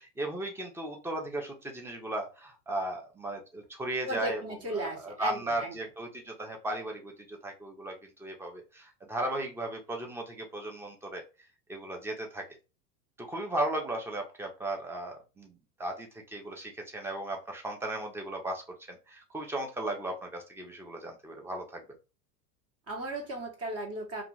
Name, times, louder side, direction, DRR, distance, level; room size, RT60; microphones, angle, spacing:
voice 1, 0.0-4.4 4.7-11.2 11.7-12.4 13.2-21.8, right 1 dB, 5° right, 2 dB, 0.4 m, -36 dB
voice 2, 4.0-5.7 22.9-24.2, right 2 dB, 30° right, 1 dB, 0.9 m, -36 dB
2.4 x 2.4 x 3.0 m, 0.31 s
hypercardioid pair, 90°, 50 cm